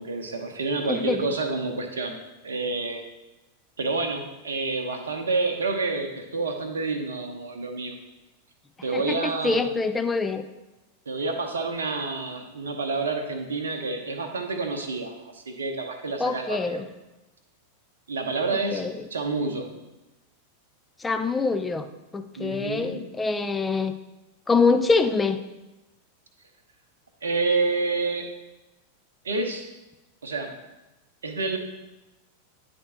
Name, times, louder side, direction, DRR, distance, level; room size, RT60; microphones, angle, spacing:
voice 1, 0.0-2.2 2.4-3.0 3.8-8.0 8.8-9.7 11.1-16.8 18.1-18.9 19.1-19.7 22.4-23.0 27.2-28.3 29.2-29.7 30.2-30.5 31.2-31.6, right 3 dB, 70° right, 5 dB, 0.8 m, -28 dB
voice 2, 8.9-10.4 16.2-16.8 18.7-18.9 21.0-21.9 22.1-23.9 24.5-25.4, left 4 dB, 10° left, 8 dB, 0.4 m, -24 dB
9.4 x 3.5 x 4.0 m, 1.0 s
figure-of-eight pair, 90°, 0 cm